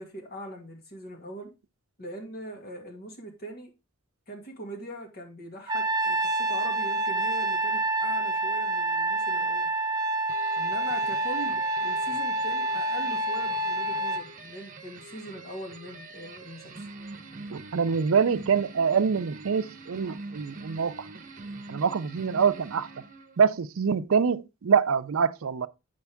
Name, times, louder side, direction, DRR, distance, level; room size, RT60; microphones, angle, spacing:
voice 1, 0.0-1.5 2.0-3.7 4.3-9.7 10.6-16.8, equal, 50° left, 2.2 m, -41 dB
Trumpet, 5.7-14.2, right 2 dB, 20° right, 0.5 m, -27 dB
sound 1, 10.3-23.5, right 3 dB, 40° right, 0.9 m, -44 dB
voice 2, 17.5-20.9 21.7-22.9 23.4-25.7, right 6 dB, 85° right, 0.5 m, -25 dB
8.1 x 5.2 x 3.5 m
head